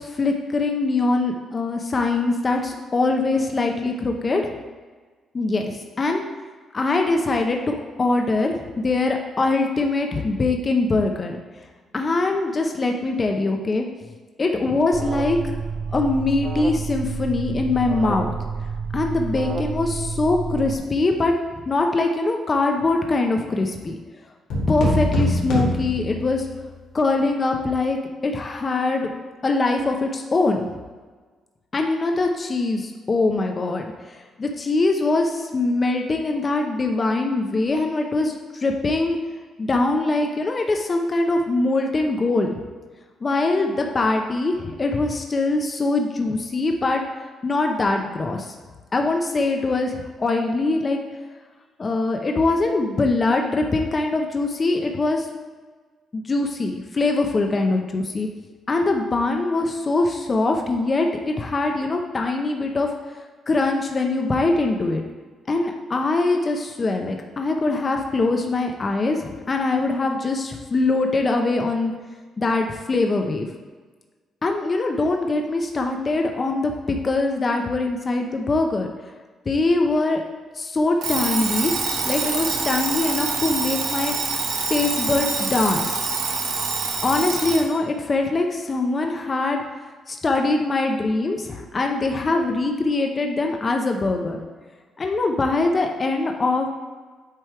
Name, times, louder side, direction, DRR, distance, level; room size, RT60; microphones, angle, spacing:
voice 1, 0.0-4.4 5.3-6.2 6.7-11.4 11.9-13.9 14.4-15.5 15.9-18.3 18.9-21.3 21.7-24.0 24.7-26.5 26.9-29.1 29.4-30.7 31.7-39.2 39.6-42.6 43.2-47.0 47.4-48.5 48.9-51.0 51.8-55.3 56.1-58.3 58.7-63.1 63.5-65.0 65.5-71.9 72.4-73.5 74.4-78.9 79.5-80.2 80.6-81.8 82.0-84.1 84.7-86.0 87.0-89.6 90.1-94.4 95.0-96.7, left 3 dB, 30° left, 3 dB, 0.6 m, -22 dB
Alarm, 14.9-20.7, right 5 dB, 45° right, 0.3 m, -29 dB
sound 1, 24.5-26.7, left 1 dB, 80° left, 1.8 m, -23 dB
Alarm 2, 81.0-87.7, right 4 dB, 70° right, 1.0 m, -26 dB
7.5 x 3.3 x 4.6 m, 1.4 s
cardioid pair, 125°, 0 cm